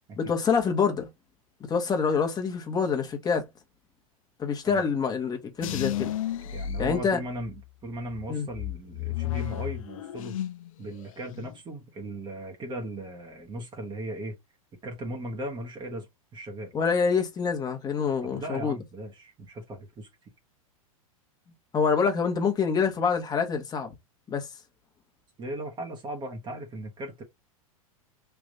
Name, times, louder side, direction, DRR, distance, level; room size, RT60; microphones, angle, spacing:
voice 1, 0.2-1.1 1.7-3.5 4.4-6.1 6.8-7.2 8.3-8.5 16.7-18.8 21.7-23.9 24.3-24.5, left 5 dB, 20° left, 1.3 m, -26 dB
sound 1, 5.6-7.6 8.1-10.7 11.0-11.6, left 11 dB, 65° left, 0.6 m, -33 dB
voice 2, 6.5-10.4 10.8-14.4 14.8-16.1 16.3-16.7 18.2-20.3 25.4-27.2, right 1 dB, 25° right, 1.3 m, -37 dB
3.5 x 3.0 x 3.9 m
hypercardioid pair, 100°, 18 cm